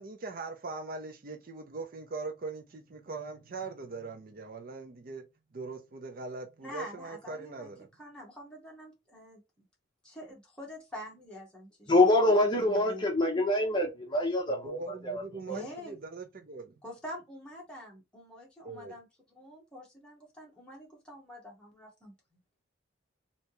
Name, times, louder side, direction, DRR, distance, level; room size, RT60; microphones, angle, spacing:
voice 1, 0.0-5.2 5.5-7.9 14.5-16.8 18.6-19.0, right 3 dB, 45° right, 0.5 m, -41 dB
voice 2, 6.6-7.7 8.0-9.6 10.0-11.9 12.5-13.0 15.5-15.9 16.8-19.1 19.3-22.4, equal, 5° left, 1.4 m, -46 dB
voice 3, 11.9-14.8 15.1-15.2 15.5-15.6, left 1 dB, 25° left, 0.7 m, -25 dB
3.3 x 2.8 x 2.9 m
head